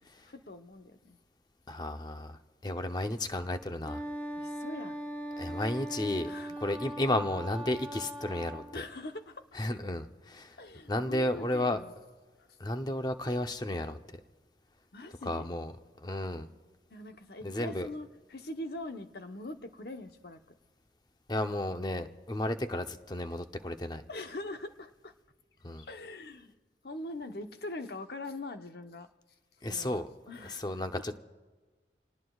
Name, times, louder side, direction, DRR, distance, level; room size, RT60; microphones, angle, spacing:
voice 1, 0.2-1.2 4.4-5.0 6.2-6.6 8.7-9.4 10.6-11.9 12.4-12.5 14.9-15.5 16.9-20.4 24.1-25.1 25.8-26.5 26.8-29.1 29.6-30.8, left 2 dB, 60° left, 7 dB, 1.0 m, -42 dB
voice 2, 1.7-4.0 5.4-6.3 6.6-8.6 9.5-10.6 10.9-11.8 12.6-14.0 15.3-15.7 16.0-16.5 17.4-17.9 21.3-24.0 25.6-25.9 29.6-30.1 30.5-31.2, left 1 dB, 25° left, 7 dB, 0.7 m, -33 dB
Wind instrument woodwind instrument, 3.8-8.7, right 1 dB, 10° left, 3.3 m, -39 dB
28.5 x 19.0 x 2.4 m, 1.4 s
head